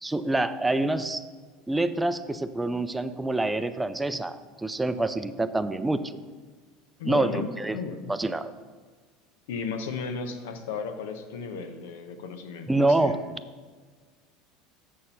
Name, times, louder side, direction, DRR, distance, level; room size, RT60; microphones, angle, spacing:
voice 1, 0.0-1.2 1.7-6.2 7.0-7.8 8.1-8.5 12.7-13.2, right 2 dB, 10° right, 11 dB, 0.4 m, -26 dB
voice 2, 7.0-7.5 7.7-8.1 9.5-13.2, left 5 dB, 85° left, 8 dB, 0.9 m, -34 dB
7.4 x 6.5 x 5.6 m, 1.5 s
supercardioid pair, 120°, 0 cm